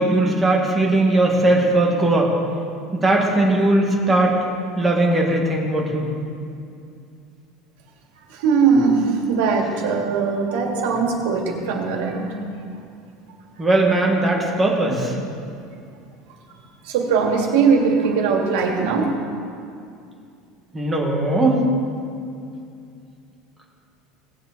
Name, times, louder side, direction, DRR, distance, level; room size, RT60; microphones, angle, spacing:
voice 1, 0.0-2.4 2.9-4.4 4.8-6.1 13.6-15.1 20.7-21.6, right 2 dB, 10° right, -1 dB, 1.6 m, -19 dB
voice 2, 8.3-12.3 16.9-19.1, right 5 dB, 75° right, 1 dB, 2.1 m, -20 dB
18.5 x 7.5 x 4.1 m, 2.4 s
cardioid pair, 175°, 0 cm